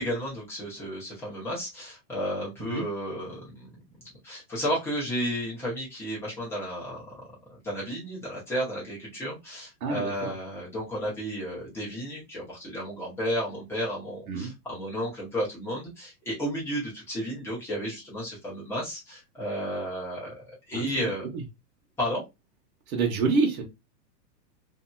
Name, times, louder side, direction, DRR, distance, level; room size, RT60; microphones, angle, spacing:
voice 1, 0.0-3.8 4.2-7.2 7.6-21.2 22.0-22.2, equal, 5° left, -7 dB, 0.8 m, -33 dB
voice 2, 9.8-10.3 14.3-14.5 20.7-21.4 22.9-23.6, right 4 dB, 60° right, 1 dB, 1.0 m, -28 dB
2.7 x 2.7 x 2.2 m, 0.22 s
hypercardioid pair, 155°, 50 cm